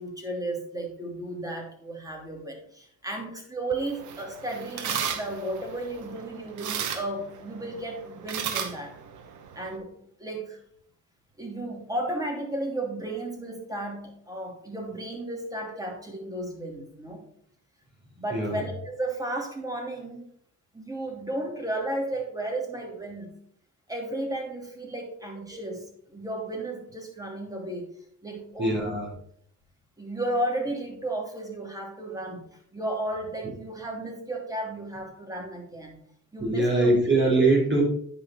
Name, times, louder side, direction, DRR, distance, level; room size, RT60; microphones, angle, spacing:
voice 1, 0.0-8.9 9.5-9.9 10.2-10.6 11.4-17.2 18.2-20.3 20.7-23.3 23.9-27.9 28.2-28.9 30.0-32.4 32.7-36.0 36.3-36.9, right 1 dB, 10° right, 1 dB, 2.8 m, -34 dB
sound 1, 3.7-9.8, right 7 dB, 80° right, 1.1 m, -35 dB
voice 2, 28.6-29.1 36.4-37.8, right 2 dB, 40° right, -3 dB, 4.0 m, -22 dB
10.0 x 5.1 x 4.3 m, 0.64 s
cardioid pair, 90°, 30 cm